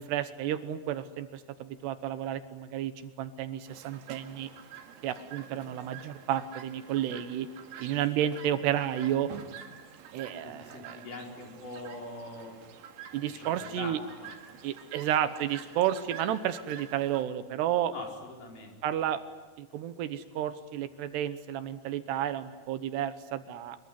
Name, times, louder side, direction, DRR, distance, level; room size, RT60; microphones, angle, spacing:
voice 1, 0.0-2.9 3.2-4.5 5.0-7.5 7.8-9.3 10.1-11.0 13.1-14.0 14.6-17.9 18.8-19.2 19.6-23.9, right 11 dB, 75° right, 11 dB, 3.1 m, -31 dB
Chirp tweet, 3.7-17.2, right 8 dB, 60° right, 3.4 m, -48 dB
voice 2, 10.4-12.6 13.3-14.4 17.9-18.7, left 2 dB, 50° left, 0 dB, 6.2 m, -43 dB
26.0 x 23.0 x 9.7 m, 1.2 s
omnidirectional pair, 4.9 m